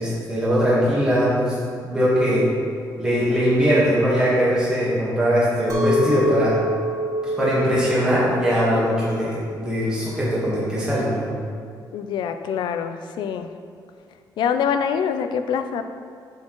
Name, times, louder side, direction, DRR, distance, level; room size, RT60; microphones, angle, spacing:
voice 1, 0.0-1.6 1.8-2.5 3.0-6.6 7.4-11.3, equal, 10° right, -9 dB, 1.3 m, -20 dB
Chink clink, 5.7-10.9, right 1 dB, 45° right, 0.7 m, -27 dB
voice 2, 11.9-13.5 14.4-15.8, left 7 dB, 85° left, 9 dB, 0.4 m, -25 dB
7.5 x 4.4 x 3.0 m, 2.1 s
wide cardioid pair, 175°, 8 cm